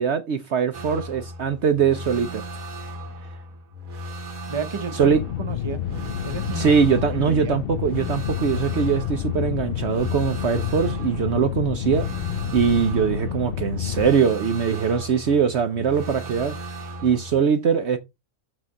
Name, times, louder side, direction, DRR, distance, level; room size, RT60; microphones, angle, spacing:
voice 1, 0.0-2.5 4.9-5.2 6.5-12.1 12.5-16.5 17.0-18.0, right 6 dB, 60° right, 1.0 m, -22 dB
sound 1, 0.7-17.4, right 1 dB, 85° right, 1.9 m, -37 dB
voice 2, 4.5-5.8 6.2-6.8 7.1-7.6, right 5 dB, 25° right, 1.0 m, -32 dB
sound 2, 5.0-14.1, left 11 dB, 60° left, 0.6 m, -29 dB
7.7 x 4.0 x 6.2 m
omnidirectional pair, 1.4 m